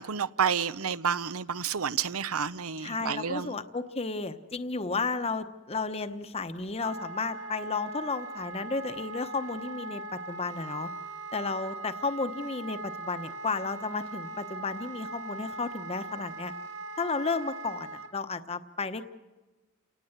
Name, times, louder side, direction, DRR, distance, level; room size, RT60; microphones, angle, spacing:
voice 1, 0.0-3.5, right 7 dB, 80° right, 0.7 m, -30 dB
voice 2, 2.8-10.9 11.3-16.5 17.0-19.0, left 4 dB, 30° left, 0.9 m, -33 dB
Wind instrument woodwind instrument, 6.8-18.1, right 2 dB, 60° right, 2.1 m, -40 dB
30.0 x 18.5 x 8.0 m
head